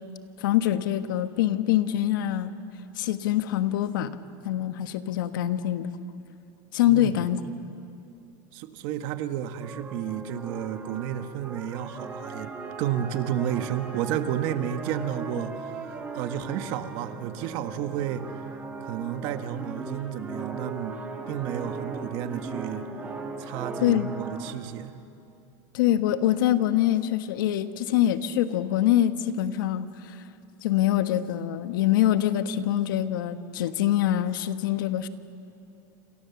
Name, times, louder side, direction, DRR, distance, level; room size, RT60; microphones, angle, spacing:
voice 1, 0.4-2.5 3.0-4.2 4.4-5.9 6.7-7.4 23.8-24.1 25.7-30.2 30.6-35.1, left 12 dB, 80° left, 10 dB, 1.4 m, -24 dB
voice 2, 6.9-7.2 8.5-12.5 12.8-15.7 16.1-18.2 18.8-20.9 21.3-22.8 23.4-24.9, right 10 dB, 45° right, 9 dB, 1.4 m, -31 dB
sound 1, 9.6-24.5, right 4 dB, 15° right, 2.1 m, -38 dB
29.0 x 27.5 x 7.1 m, 2.6 s
supercardioid pair, 170°, 11 cm